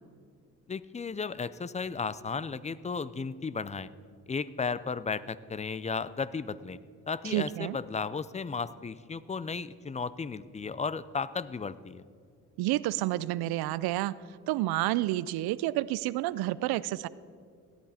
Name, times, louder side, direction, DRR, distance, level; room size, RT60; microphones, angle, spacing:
voice 1, 0.7-3.9 4.3-6.8 7.1-12.0, left 5 dB, 20° left, 17 dB, 0.5 m, -34 dB
voice 2, 7.2-7.8 12.6-14.2 14.5-17.1, right 16 dB, 85° right, 19 dB, 0.5 m, -29 dB
17.0 x 11.0 x 4.3 m, 2.3 s
cardioid pair, 75°, 37 cm